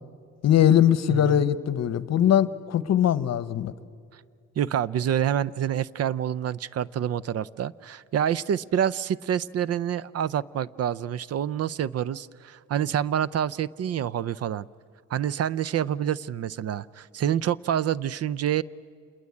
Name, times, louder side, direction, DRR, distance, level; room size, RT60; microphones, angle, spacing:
voice 1, 0.4-3.7, left 10 dB, 60° left, 16 dB, 0.9 m, -21 dB
voice 2, 1.1-1.4 4.6-14.7 15.1-18.6, right 9 dB, 55° right, 21 dB, 0.6 m, -27 dB
27.5 x 21.5 x 8.5 m, 2.3 s
cardioid pair, 90°, 30 cm